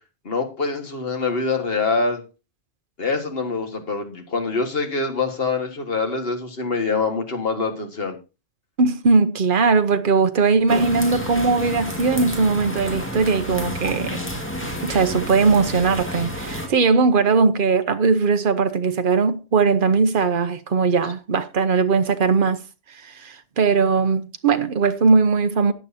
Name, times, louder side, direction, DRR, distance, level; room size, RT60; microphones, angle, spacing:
voice 1, 0.3-2.2 3.0-8.2, left 4 dB, 60° left, 2.0 m, -25 dB
voice 2, 8.8-14.2 14.8-22.6 22.9-25.7, right 4 dB, 50° right, 1.0 m, -19 dB
sound 1, 10.7-16.7, equal, 10° left, 2.1 m, -30 dB
14.0 x 9.1 x 2.8 m
omnidirectional pair, 1.1 m